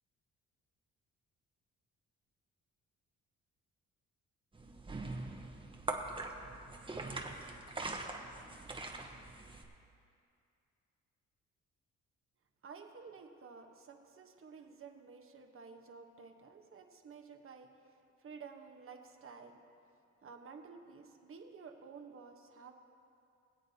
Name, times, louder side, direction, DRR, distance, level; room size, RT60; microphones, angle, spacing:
sound 1, 4.5-9.6, right 2 dB, 15° right, 1.1 m, -42 dB
voice 1, 12.6-17.7 18.2-19.6 20.2-22.7, right 5 dB, 45° right, 4 dB, 1.2 m, -52 dB
22.5 x 8.0 x 2.8 m, 2.5 s
cardioid pair, 90°, 30 cm